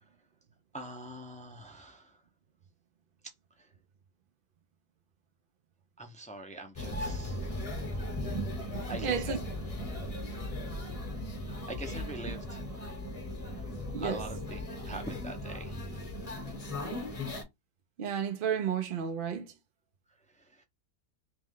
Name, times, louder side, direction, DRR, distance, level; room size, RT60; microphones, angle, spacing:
voice 1, 0.7-2.2 6.0-7.6 8.9-9.4 11.5-12.6 14.0-15.9 20.4-20.6, right 1 dB, 10° left, 0.4 m, -43 dB
sound 1, 6.8-17.4, left 1 dB, 25° left, 1.0 m, -37 dB
voice 2, 9.0-9.4 12.3-12.4 13.9-14.2 18.0-19.5, right 8 dB, 65° right, 0.5 m, -32 dB
3.1 x 3.1 x 3.6 m
omnidirectional pair, 1.6 m